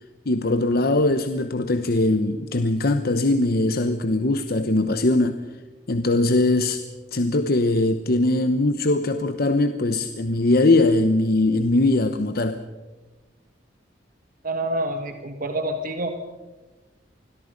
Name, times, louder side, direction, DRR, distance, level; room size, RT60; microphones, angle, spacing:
voice 1, 0.3-5.4 5.9-6.8 7.1-12.6, left 2 dB, 55° left, 9 dB, 1.0 m, -21 dB
voice 2, 14.4-16.1, right 1 dB, 50° right, 6 dB, 1.7 m, -27 dB
27.0 x 21.5 x 5.3 m, 1.2 s
head